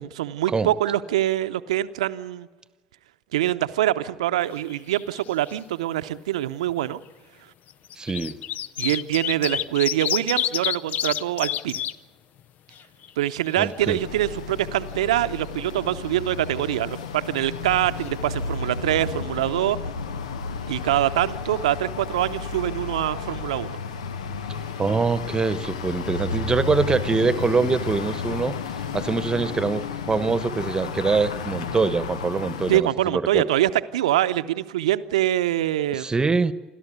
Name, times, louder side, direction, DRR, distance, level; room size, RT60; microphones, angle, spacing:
voice 1, 0.0-2.5 3.3-7.0 8.8-11.8 13.2-19.8 20.7-23.8 32.7-36.1, right 13 dB, 75° right, 11 dB, 0.7 m, -24 dB
sound 1, 4.5-5.2 5.5-5.6 6.7-6.8 7.7-11.9 12.4-12.5 12.8-13.8 17.7-17.8 18.0-18.1, left 11 dB, 50° left, 0.6 m, -29 dB
voice 2, 8.0-8.4 13.6-14.0 24.8-28.6 28.9-32.9 33.1-33.5 35.9-36.5, right 4 dB, 20° right, 14 dB, 1.2 m, -24 dB
sound 2, 13.8-32.8, left 5 dB, 80° left, 0.9 m, -32 dB
29.0 x 13.0 x 9.3 m, 1.3 s
hypercardioid pair, 65°, 3 cm